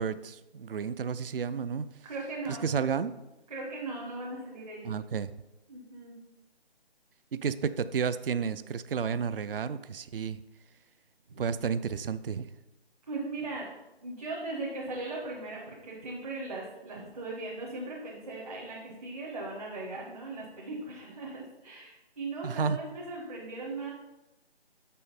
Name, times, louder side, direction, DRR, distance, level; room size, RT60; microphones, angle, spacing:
voice 1, 0.0-1.9 2.6-3.1 4.8-5.3 7.3-10.4 11.4-12.5 22.4-22.8, right 6 dB, 60° right, 14 dB, 0.4 m, -31 dB
voice 2, 2.0-2.6 3.5-4.9 5.7-6.2 11.3-11.4 13.1-13.7 14.0-23.9, right 2 dB, 35° right, -4 dB, 1.2 m, -38 dB
7.2 x 5.6 x 4.1 m, 0.97 s
figure-of-eight pair, 165°, 32 cm